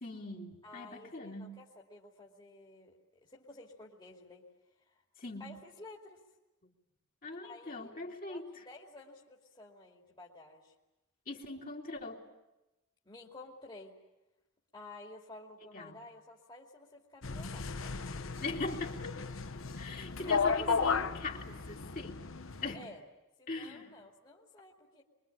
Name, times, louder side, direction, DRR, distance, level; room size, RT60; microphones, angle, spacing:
voice 1, 0.0-1.6 5.2-5.5 7.2-8.6 11.3-12.2 15.7-16.0 18.4-19.1 19.7-22.2 22.6-22.8 23.5-23.9, left 3 dB, 40° left, -1 dB, 2.9 m, -41 dB
voice 2, 0.6-4.5 4.8-5.0 5.4-6.2 7.4-10.7 13.0-13.9 14.7-18.0 20.2-21.1 22.7-23.0 23.4-25.0, left 2 dB, 20° left, -3 dB, 2.6 m, -51 dB
sound 1, 17.2-22.7, left 5 dB, 65° left, 1.1 m, -34 dB
25.0 x 23.5 x 8.6 m, 0.99 s
head